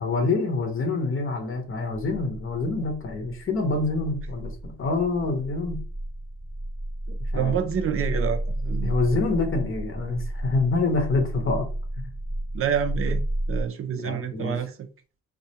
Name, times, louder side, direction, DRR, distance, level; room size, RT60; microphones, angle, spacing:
voice 1, 0.0-5.8 7.3-7.5 8.8-11.7 13.9-14.6, left 3 dB, 45° left, 0.8 m, -26 dB
sound 1, 2.1-13.6, right 1 dB, 5° left, 0.7 m, -32 dB
voice 2, 7.1-9.0 12.5-13.2 13.5-14.8, right 8 dB, 50° right, 0.4 m, -28 dB
2.3 x 2.2 x 2.8 m
cardioid pair, 90°, 30 cm